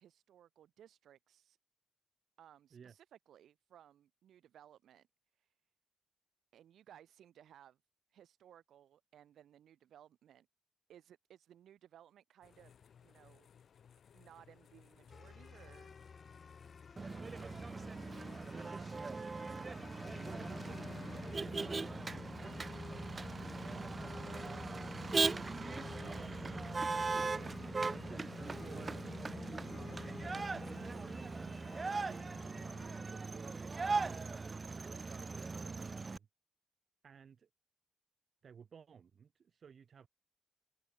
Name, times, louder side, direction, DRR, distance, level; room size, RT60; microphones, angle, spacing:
voice 1, 0.0-1.6 2.4-5.1 5.3-5.5 6.5-7.8 8.1-10.5 10.9-12.7 13.0-13.5 14.1-16.2, right 10 dB, 80° right, 1.4 m, -61 dB
sound 1, 12.4-18.5, left 7 dB, 60° left, 4.7 m, -62 dB
sound 2, 15.1-33.1, left 5 dB, 45° left, 2.6 m, -50 dB
Motor vehicle (road), 17.0-36.2, right 4 dB, 30° right, 0.6 m, -39 dB
voice 2, 18.6-19.0 19.4-19.8 20.1-22.6 23.6-24.7 25.9-28.0 28.4-29.0 30.3-31.4 31.9-34.3 35.1-36.3 37.0-37.5 38.4-40.1, right 7 dB, 55° right, 6.1 m, -58 dB
open air
cardioid pair, 95°, 0 cm